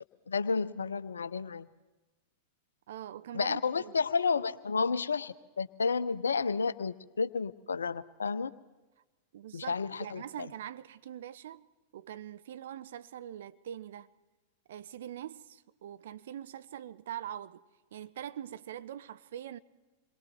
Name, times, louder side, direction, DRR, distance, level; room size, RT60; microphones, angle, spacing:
voice 1, 0.3-1.7 3.3-8.5 9.5-10.3, left 5 dB, 70° left, 0.6 m, -31 dB
voice 2, 2.9-4.0 9.3-11.7 11.9-14.1 14.7-17.6 17.9-19.6, right 10 dB, 60° right, 0.7 m, -43 dB
27.5 x 21.5 x 4.4 m
figure-of-eight pair, 90°, 0 cm